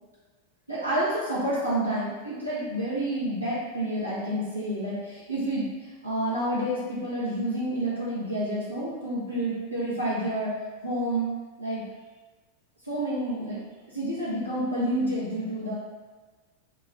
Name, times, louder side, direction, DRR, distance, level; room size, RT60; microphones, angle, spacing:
voice 1, 0.7-10.5 10.8-11.3 11.6-11.8 12.8-13.6 13.9-15.7, right 1 dB, 90° right, -10 dB, 0.6 m, -29 dB
2.4 x 2.3 x 3.1 m, 1.3 s
figure-of-eight pair, 90°, 0 cm